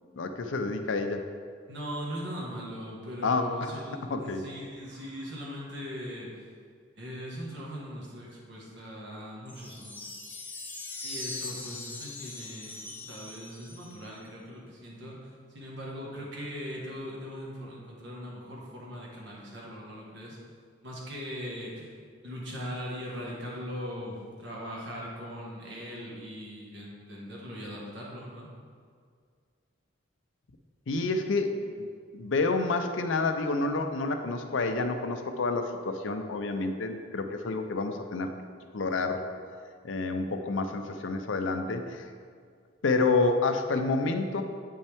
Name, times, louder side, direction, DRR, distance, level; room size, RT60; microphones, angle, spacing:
voice 1, 0.1-1.2 3.2-3.7 4.1-4.4 30.9-31.9 32.1-38.3 38.7-39.2 39.8-42.0 42.8-44.4, left 3 dB, 75° left, 6 dB, 0.5 m, -29 dB
voice 2, 1.7-6.4 6.9-10.1 11.0-20.4 20.8-21.9 22.2-28.5, equal, 60° right, -3 dB, 1.5 m, -40 dB
sound 1, 9.5-14.2, left 3 dB, 10° left, 0.5 m, -41 dB
7.9 x 5.4 x 3.5 m, 2.1 s
head